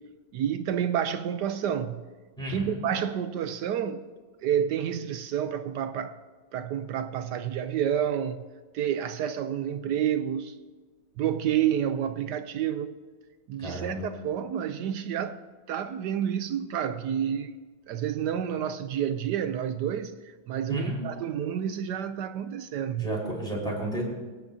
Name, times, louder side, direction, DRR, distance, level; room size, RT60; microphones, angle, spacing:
voice 1, 0.3-2.1 2.5-4.0 4.4-6.2 6.5-8.4 8.7-10.5 11.2-13.0 13.5-15.4 15.7-17.6 17.9-23.1, right 9 dB, 75° right, 1.1 m, -29 dB
voice 2, 2.4-2.8 13.6-14.1 20.7-21.0 23.0-24.0, right 1 dB, ahead, 4.4 m, -32 dB
23.5 x 9.9 x 2.7 m
omnidirectional pair, 2.0 m